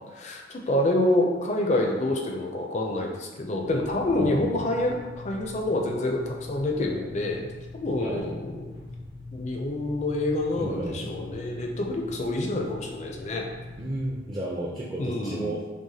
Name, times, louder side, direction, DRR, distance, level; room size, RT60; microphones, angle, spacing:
voice 1, 0.0-7.5 7.7-8.7 9.3-13.5 15.0-15.5, left 1 dB, 35° left, 1 dB, 0.5 m, -27 dB
sound 1, 3.6-14.1, left 2 dB, 80° right, 1.3 m, -42 dB
voice 2, 4.2-4.6 8.0-8.2 10.5-11.2 13.8-15.6, right 1 dB, 25° right, -5 dB, 0.4 m, -33 dB
6.0 x 2.1 x 2.8 m, 1.3 s
head